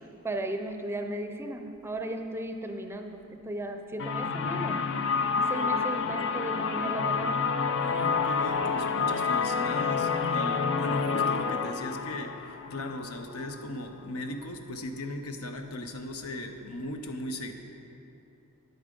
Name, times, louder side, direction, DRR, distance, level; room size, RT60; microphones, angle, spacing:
voice 1, 0.2-4.8 5.5-7.4, right 1 dB, 10° right, 5 dB, 0.5 m, -35 dB
sound 1, 4.0-13.7, left 5 dB, 55° left, 0.4 m, -28 dB
voice 2, 7.8-17.5, left 1 dB, 85° left, 5 dB, 0.8 m, -37 dB
9.3 x 8.6 x 5.2 m, 2.8 s
head